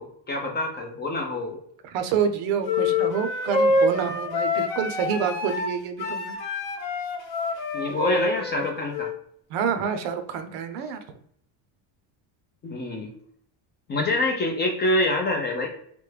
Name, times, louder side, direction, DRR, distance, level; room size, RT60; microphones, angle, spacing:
voice 1, 0.0-1.6 7.7-9.1 12.6-13.1 13.9-15.7, left 1 dB, 25° left, 1 dB, 0.4 m, -26 dB
voice 2, 1.8-6.4 9.5-11.0, right 7 dB, 80° right, 8 dB, 0.7 m, -27 dB
sound 1, 2.6-9.2, left 2 dB, 50° left, 0.8 m, -26 dB
3.4 x 2.1 x 3.1 m, 0.67 s
cardioid pair, 140°, 49 cm